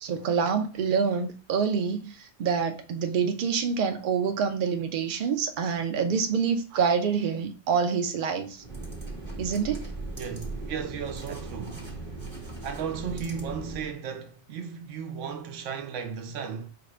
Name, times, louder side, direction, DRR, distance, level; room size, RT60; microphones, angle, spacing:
voice 1, 0.0-8.6 9.4-9.8, right 6 dB, 55° right, 0.6 m, -26 dB
sound 1, 8.6-13.9, right 2 dB, 25° right, 0.9 m, -38 dB
voice 2, 10.1-11.9 12.6-16.7, right 7 dB, 85° right, 1.0 m, -35 dB
5.0 x 2.4 x 3.2 m
omnidirectional pair, 1.2 m